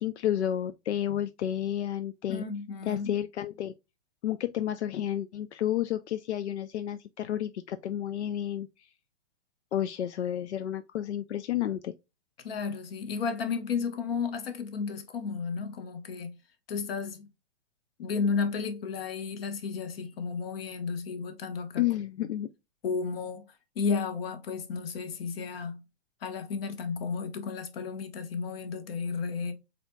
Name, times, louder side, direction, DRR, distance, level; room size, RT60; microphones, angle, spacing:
voice 1, 0.0-2.4 2.8-3.7 4.2-8.9 9.7-11.9 21.8-22.5, left 11 dB, 85° left, 0.5 m, -31 dB
voice 2, 2.3-3.1 12.4-16.3 16.7-17.3 18.0-21.8 22.8-23.5 23.7-25.8 26.2-29.5, left 5 dB, 60° left, 1.2 m, -33 dB
4.2 x 4.2 x 2.2 m
hypercardioid pair, 145°, 33 cm